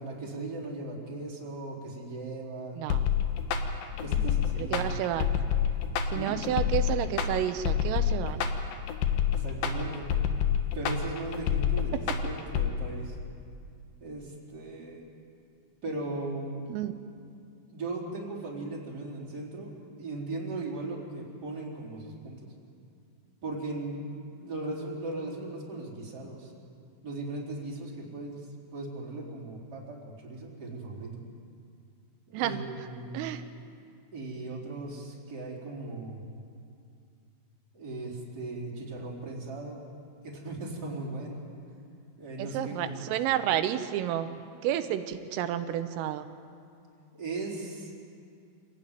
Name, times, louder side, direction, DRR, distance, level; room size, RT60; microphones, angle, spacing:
voice 1, 0.0-2.8 4.0-5.0 6.1-6.4 9.3-10.1 10.7-13.2 14.0-15.0 15.8-16.6 17.7-19.7 20.0-22.5 23.4-24.0 24.4-26.5 27.0-31.1 32.3-33.3 34.1-36.2 37.7-39.8 40.2-41.4 42.2-43.1 47.1-47.9, right 2 dB, 20° right, -4 dB, 4.2 m, -38 dB
voice 2, 2.8-3.1 4.6-5.3 6.1-8.4 16.7-16.9 32.3-32.6 33.1-33.4 42.4-44.3 44.6-46.3, right 11 dB, 90° right, 9 dB, 3.5 m, -30 dB
sound 1, 2.9-12.7, left 8 dB, 70° left, 2.3 m, -28 dB
26.5 x 16.5 x 9.2 m, 2.4 s
omnidirectional pair, 5.7 m